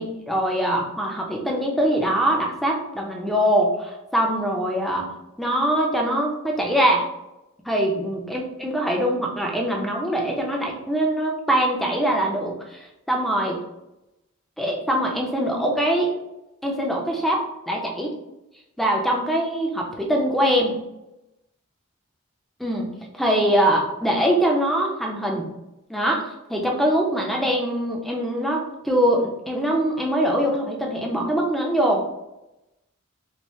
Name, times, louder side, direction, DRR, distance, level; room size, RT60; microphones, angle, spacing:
voice 1, 0.0-5.1 5.4-7.1 7.7-13.6 14.6-16.1 16.6-17.4 17.7-18.1 18.8-20.8 22.6-25.5 25.9-32.0, equal, ahead, -1 dB, 0.5 m, -23 dB
4.5 x 2.0 x 3.1 m, 0.92 s
head